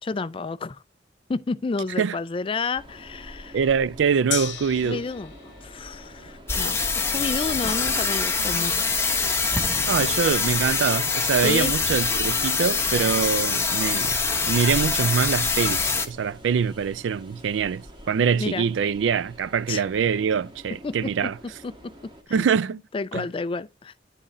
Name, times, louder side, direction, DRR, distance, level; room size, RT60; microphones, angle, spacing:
voice 1, 0.0-0.8 1.3-3.6 4.8-8.9 11.4-11.7 18.3-18.6 19.7-19.8 20.8-21.1 21.6-21.7 22.3-22.4 22.9-23.9, left 4 dB, 30° left, 0.4 m, -30 dB
Train, 2.7-22.2, equal, 25° right, 1.3 m, -44 dB
voice 2, 3.5-5.0 9.9-14.2 14.5-21.3 22.3-22.8 23.1-23.2, right 6 dB, 80° right, 0.4 m, -24 dB
Gong, 4.3-12.1 12.4-12.5, left 10 dB, 70° left, 1.1 m, -40 dB
sound 1, 6.5-16.1, left 4 dB, 15° left, 0.9 m, -24 dB
10.0 x 3.8 x 4.1 m
head